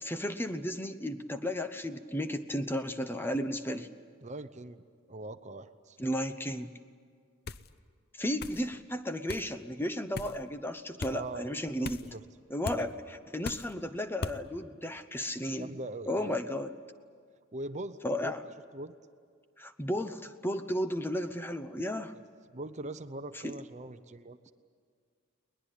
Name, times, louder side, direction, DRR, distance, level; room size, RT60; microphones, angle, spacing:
voice 1, 0.0-3.9 6.0-6.7 8.2-12.0 12.5-12.9 13.3-15.7 16.1-16.7 18.0-18.4 19.6-22.1 23.4-23.5, equal, 10° left, 9 dB, 0.8 m, -34 dB
voice 2, 4.2-4.8 5.1-6.0 11.1-11.5 11.8-12.2 12.7-12.9 15.5-16.4 17.5-18.3 18.7-18.9 22.1-22.2 22.5-24.5, right 2 dB, 35° right, 11 dB, 0.8 m, -41 dB
sound 1, 7.5-7.7 8.4-8.6 9.3-9.5 10.1-10.4 11.0-11.2 11.8-12.1 12.6-12.8 13.4-13.7 14.2-14.4, left 3 dB, 50° left, 0.7 m, -38 dB
21.5 x 20.0 x 10.0 m, 2.1 s
head